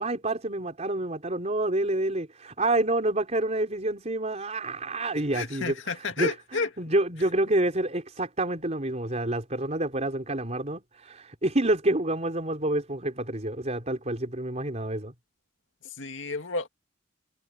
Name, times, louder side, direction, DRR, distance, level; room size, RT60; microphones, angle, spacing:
voice 1, 0.0-15.1, right 1 dB, 35° right, 4.3 m, -28 dB
voice 2, 5.3-6.7 16.0-16.7, left 4 dB, 75° left, 2.3 m, -31 dB
head